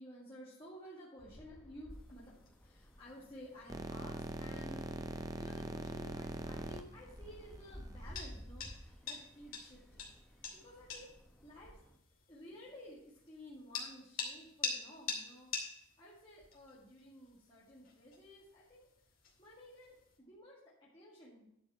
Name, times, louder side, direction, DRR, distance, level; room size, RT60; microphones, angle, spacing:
voice 1, 0.0-10.1 10.5-11.1 11.4-11.8 12.1-18.9 19.4-21.5, equal, 25° left, -7 dB, 2.0 m, -54 dB
sound 1, 1.2-12.0, equal, 5° left, 1.0 m, -55 dB
sound 2, 1.9-20.2, left 5 dB, 65° left, 2.6 m, -48 dB
sound 3, 3.7-8.2, right 2 dB, 15° right, 0.5 m, -42 dB
11.0 x 5.3 x 5.7 m, 0.80 s
head